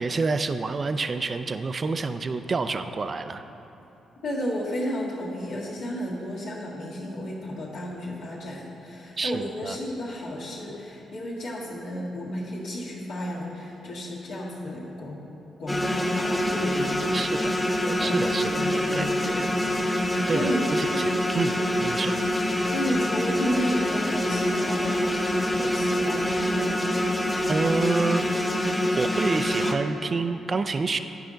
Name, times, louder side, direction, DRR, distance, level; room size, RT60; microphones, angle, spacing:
voice 1, 0.0-3.4 9.2-9.8 17.1-17.6 18.0-19.5 20.3-22.2 27.5-28.5 29.0-31.0, right 4 dB, 45° right, 10 dB, 0.4 m, -28 dB
voice 2, 4.2-15.2 15.6-17.2 17.8-19.4 20.3-20.6 21.6-21.8 22.7-25.1 25.5-27.0, left 1 dB, 80° left, -7 dB, 1.6 m, -32 dB
sound 1, 15.7-29.7, left 1 dB, 15° left, 1.0 m, -25 dB
10.5 x 4.9 x 3.9 m, 2.9 s
supercardioid pair, 50°, 0 cm